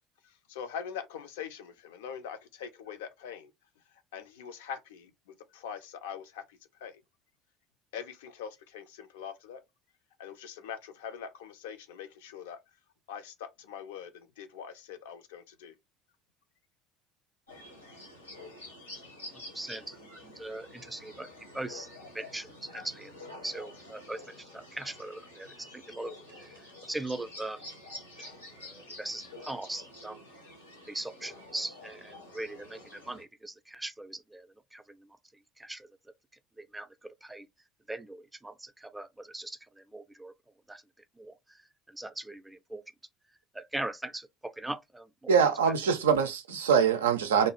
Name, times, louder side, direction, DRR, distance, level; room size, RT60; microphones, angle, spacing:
voice 1, 0.2-3.5 3.8-7.0 7.9-9.6 10.2-12.6 13.1-15.7, left 8 dB, 70° left, 0.4 m, -43 dB
sound 1, 17.5-33.2, left 1 dB, 90° left, 0.9 m, -48 dB
voice 2, 19.3-23.1 23.4-27.7 28.6-30.2 30.9-35.2 35.6-35.9 36.6-37.5 37.9-40.3 40.7-40.8 41.2-41.6 41.9-42.8 43.5-45.3 45.6-45.7, right 2 dB, 10° right, 0.4 m, -40 dB
voice 3, 45.3-47.5, right 7 dB, 75° right, 0.4 m, -24 dB
2.5 x 2.2 x 2.9 m
figure-of-eight pair, 60°, 0 cm